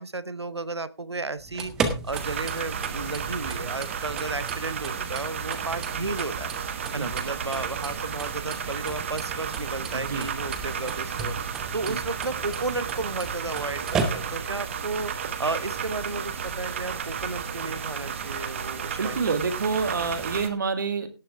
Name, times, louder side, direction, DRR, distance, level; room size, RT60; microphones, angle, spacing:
voice 1, 0.0-6.5 6.9-11.4 11.7-15.1 15.4-19.3, right 3 dB, 85° right, 16 dB, 0.9 m, -33 dB
sound 1, 1.4-14.6, right 5 dB, 5° right, 0.4 m, -35 dB
sound 2, 2.1-20.5, right 7 dB, 30° right, 1.0 m, -33 dB
voice 2, 9.9-10.3 11.9-12.0 19.0-21.1, right 4 dB, 50° right, 10 dB, 1.8 m, -28 dB
17.0 x 6.9 x 3.4 m, 0.30 s
figure-of-eight pair, 155°, 14 cm